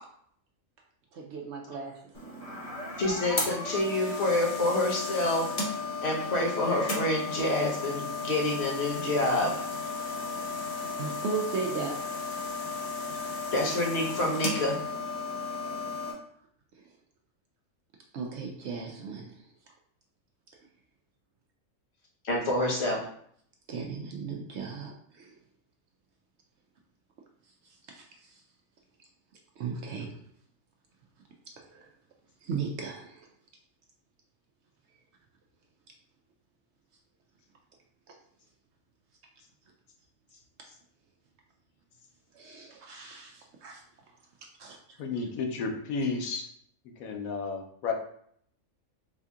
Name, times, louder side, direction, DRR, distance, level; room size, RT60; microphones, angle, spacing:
voice 1, 1.1-2.0 11.0-11.9 18.1-19.3 23.7-25.3 27.9-28.0 29.6-30.2 31.7-31.9 32.4-33.3 42.3-43.8 44.6-44.8 45.2-45.3 46.0-46.2, right 5 dB, 65° right, 1 dB, 0.7 m, -36 dB
sound 1, 2.1-16.1, left 3 dB, 40° left, 0.6 m, -34 dB
voice 2, 3.0-5.5 6.0-9.6 13.5-14.8 22.2-23.0, left 1 dB, 55° left, -3 dB, 1.1 m, -27 dB
voice 3, 45.0-46.4 47.0-47.9, left 4 dB, 85° left, 3 dB, 1.1 m, -32 dB
4.2 x 2.7 x 2.4 m, 0.65 s
omnidirectional pair, 1.4 m